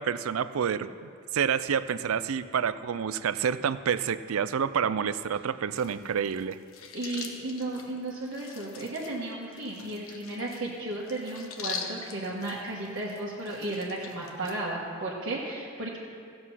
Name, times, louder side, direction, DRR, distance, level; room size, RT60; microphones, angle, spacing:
voice 1, 0.0-6.6, right 7 dB, 85° right, 14 dB, 0.4 m, -28 dB
sound 1, 5.7-14.5, left 6 dB, 80° left, 1.1 m, -43 dB
voice 2, 6.9-16.0, right 2 dB, 60° right, -6 dB, 1.5 m, -34 dB
15.0 x 7.8 x 5.6 m, 2.4 s
head